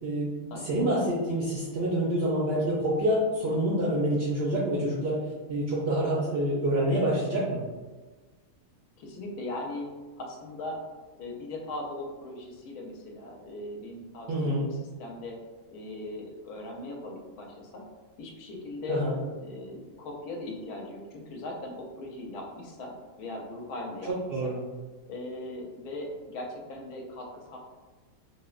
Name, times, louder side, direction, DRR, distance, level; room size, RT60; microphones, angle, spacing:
voice 1, 0.0-5.2 5.5-7.6 14.3-14.6 18.9-19.2 24.1-24.6, right 1 dB, 70° right, -6 dB, 0.6 m, -27 dB
voice 2, 9.0-9.9 10.2-10.8 11.2-14.3 14.6-14.7 15.0-15.4 15.7-17.8 18.2-19.0 19.4-24.1 24.4-24.5 25.1-27.6, left 2 dB, 85° left, 1 dB, 1.1 m, -39 dB
3.1 x 2.1 x 2.3 m, 1.3 s
omnidirectional pair, 1.6 m